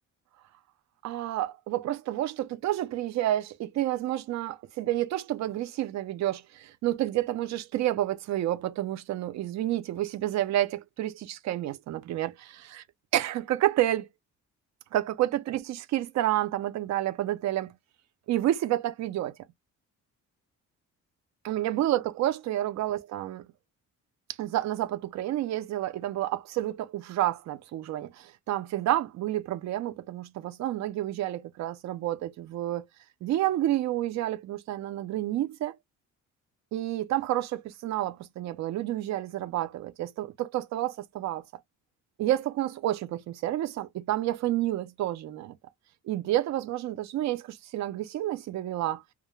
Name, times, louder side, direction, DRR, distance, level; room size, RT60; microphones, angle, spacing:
voice 1, 1.0-12.8 13.1-14.1 14.9-17.7 18.3-19.3 21.4-23.4 24.4-32.9 33.2-35.7 36.7-41.4 42.2-45.5 46.1-49.0, right 13 dB, 60° right, 0.5 m, -29 dB
2.3 x 2.1 x 3.0 m
cardioid pair, 165°, 31 cm